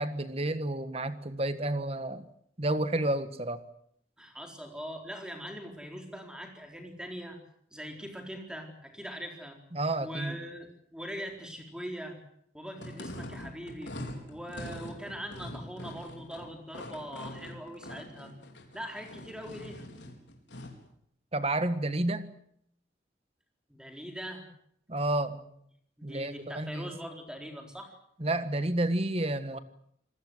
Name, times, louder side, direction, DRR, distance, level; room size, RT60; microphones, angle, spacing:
voice 1, 0.0-2.2 2.6-3.6 9.7-10.4 21.3-22.3 24.9-25.4 26.0-26.9 28.2-29.6, right 1 dB, 30° right, 12 dB, 1.5 m, -30 dB
voice 2, 4.2-7.4 7.7-9.6 10.0-12.2 12.5-14.0 14.3-18.3 18.7-19.9 23.7-24.5 25.3-25.4 26.0-28.0, equal, 5° right, 3 dB, 4.2 m, -42 dB
sound 1, 12.7-20.8, left 1 dB, 70° left, 4.9 m, -43 dB
27.0 x 20.0 x 8.0 m, 0.69 s
head